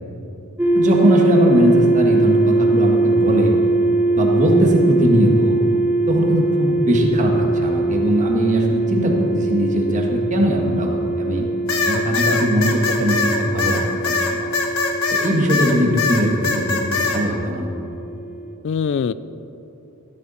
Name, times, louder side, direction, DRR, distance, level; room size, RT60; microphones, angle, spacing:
sound 1, 0.6-18.5, right 2 dB, 10° right, 0.9 m, -21 dB
voice 1, 0.7-3.5 4.2-5.6 6.1-11.5 11.8-14.5 15.1-17.7, equal, 35° right, 0 dB, 1.8 m, -20 dB
sound 2, 11.7-15.7 16.0-17.2, left 4 dB, 80° left, 1.6 m, -21 dB
voice 2, 11.9-12.4 18.6-19.1, left 6 dB, 60° left, 16 dB, 0.3 m, -24 dB
14.0 x 13.0 x 4.3 m, 2.9 s
head